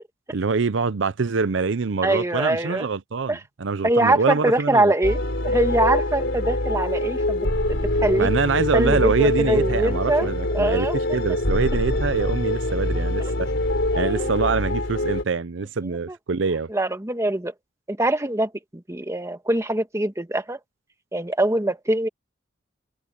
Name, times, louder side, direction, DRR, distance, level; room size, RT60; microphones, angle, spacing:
voice 1, 0.3-4.9 8.2-10.9 11.1-13.5 13.9-16.7, right 4 dB, 80° right, 0.6 m, -24 dB
voice 2, 2.0-2.9 3.3-3.4 3.8-8.3 8.7-10.9 13.9-14.3 16.1-16.2 16.7-17.5 17.9-20.6 21.1-22.1, right 1 dB, 15° right, 1.5 m, -23 dB
sound 1, 5.0-15.2, left 1 dB, 75° left, 3.7 m, -24 dB
head